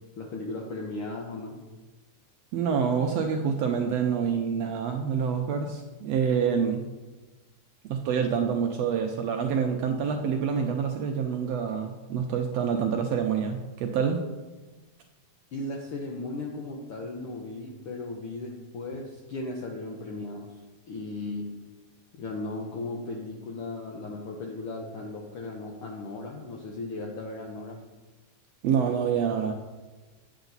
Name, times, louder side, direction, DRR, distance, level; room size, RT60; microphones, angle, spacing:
voice 1, 0.2-1.6 15.5-20.6 20.9-21.6 22.1-27.8, left 2 dB, 75° left, 0 dB, 1.3 m, -36 dB
voice 2, 2.5-6.8 7.8-14.2 28.6-29.5, right 7 dB, 75° right, 4 dB, 1.5 m, -27 dB
9.0 x 8.1 x 4.0 m, 1.2 s
omnidirectional pair, 3.5 m